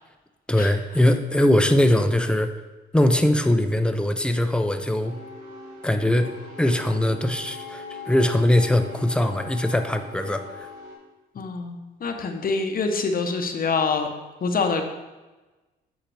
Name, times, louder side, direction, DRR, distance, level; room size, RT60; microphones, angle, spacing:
voice 1, 0.5-2.5 2.9-5.1 5.8-6.3 6.6-10.7, left 1 dB, 5° left, 7 dB, 0.6 m, -21 dB
sound 1, 4.9-11.0, left 3 dB, 75° right, 2.7 m, -40 dB
voice 2, 11.3-14.1 14.4-14.8, left 4 dB, 45° left, 5 dB, 0.9 m, -25 dB
8.6 x 5.7 x 3.4 m, 1.2 s
cardioid pair, 90°, 20 cm